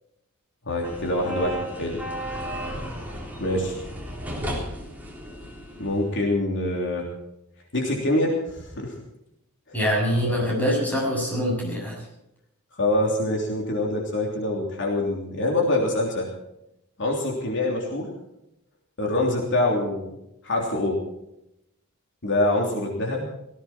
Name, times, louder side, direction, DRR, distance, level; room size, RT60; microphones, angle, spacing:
voice 1, 0.7-2.0 3.4-3.7 5.8-7.1 7.7-8.9 9.7-9.8 10.3-10.5 12.8-16.3 17.0-18.1 19.0-20.1 20.4-21.0 22.2-23.3, left 1 dB, 55° left, -1 dB, 3.3 m, -25 dB
sound 1, 0.8-6.2, equal, 10° right, 3.6 m, -34 dB
voice 2, 9.7-12.1, equal, 10° left, -2 dB, 6.9 m, -24 dB
18.5 x 16.0 x 4.4 m, 0.84 s
head